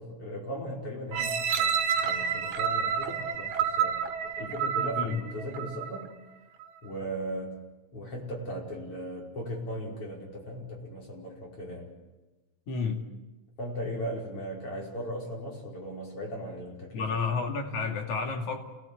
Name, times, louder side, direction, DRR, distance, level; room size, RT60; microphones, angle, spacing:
voice 1, 0.0-6.1 6.8-7.6 7.9-11.9 13.6-17.2, equal, 50° left, -2 dB, 6.2 m, -38 dB
sound 1, 1.1-6.1 6.6-6.7, right 7 dB, 80° right, 2.7 m, -29 dB
voice 2, 12.7-13.1 16.9-18.6, left 5 dB, 80° left, 2 dB, 4.0 m, -30 dB
29.0 x 18.5 x 8.4 m, 1.1 s
omnidirectional pair, 3.4 m